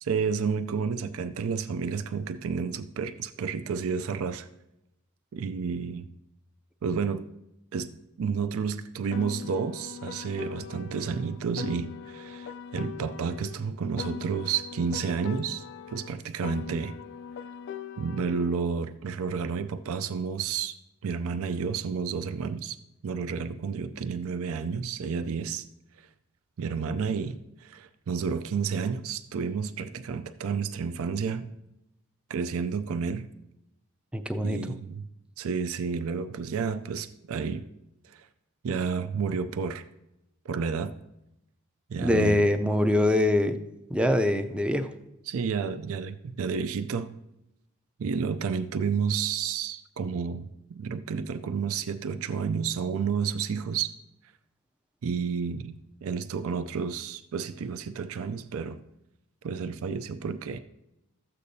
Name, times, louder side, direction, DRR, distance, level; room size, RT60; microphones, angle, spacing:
voice 1, 0.0-4.5 5.3-6.1 6.8-7.3 7.7-7.9 8.2-17.0 18.0-20.8 21.0-22.8 23.0-25.7 26.6-31.5 32.3-33.3 34.4-35.0 35.4-37.6 38.1-38.3 38.6-39.8 40.5-40.9 41.9-42.4 45.3-47.1 48.0-53.9 55.0-55.7 56.0-58.8 59.4-60.6, right 6 dB, 65° right, 12 dB, 0.4 m, -31 dB
Piano, 9.1-13.6 14.0-18.6, left 7 dB, 55° left, 0.4 m, -40 dB
voice 2, 34.1-34.8 42.0-43.6 43.9-44.9, left 1 dB, 5° right, 7 dB, 0.4 m, -24 dB
13.0 x 8.3 x 2.7 m, 0.88 s
head